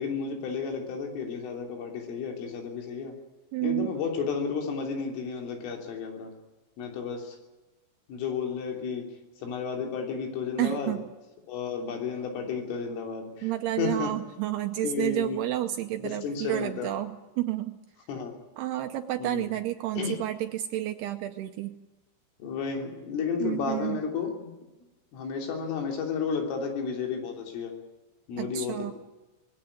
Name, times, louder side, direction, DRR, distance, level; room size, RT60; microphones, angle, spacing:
voice 1, 0.0-3.1 3.6-6.3 6.8-7.4 8.1-9.1 9.4-11.0 11.5-13.5 13.8-14.1 14.8-15.4 16.0-16.9 18.1-18.3 19.2-19.5 20.0-20.2 22.4-24.5 25.1-27.7 28.3-28.9, left 5 dB, 80° left, 3 dB, 5.7 m, -32 dB
voice 2, 3.5-3.9 10.6-11.0 13.4-17.8 18.6-21.8 23.4-24.0 28.4-28.9, right 14 dB, 85° right, 7 dB, 2.3 m, -30 dB
20.0 x 16.5 x 9.9 m, 1.1 s
omnidirectional pair, 5.7 m